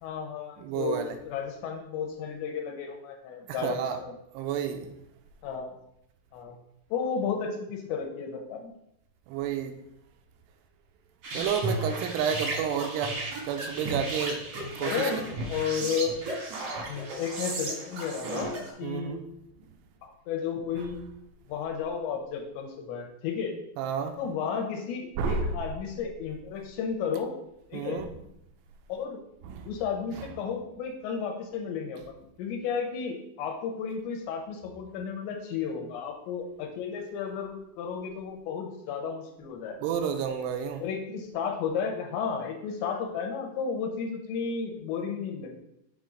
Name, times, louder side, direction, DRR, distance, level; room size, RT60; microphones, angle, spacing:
voice 1, 0.0-4.1 5.4-5.7 6.3-6.6 6.9-8.7 14.8-15.2 15.5-16.1 16.9-19.2 20.0-21.0 21.5-23.6 24.2-27.3 27.7-28.0 28.9-29.2 29.7-39.8 40.8-45.6, left 6 dB, 80° left, 2.9 m, -33 dB
voice 2, 0.6-1.1 3.5-4.0 4.3-4.9 9.3-9.8 11.3-14.5 14.8-15.1 18.8-19.2 23.8-24.2 25.2-25.5 27.7-28.1 29.4-29.7 39.8-40.8, right 7 dB, 85° right, 2.4 m, -30 dB
sound 1, 11.2-18.7, right 2 dB, 65° right, 1.5 m, -34 dB
7.2 x 3.6 x 5.2 m
omnidirectional pair, 5.3 m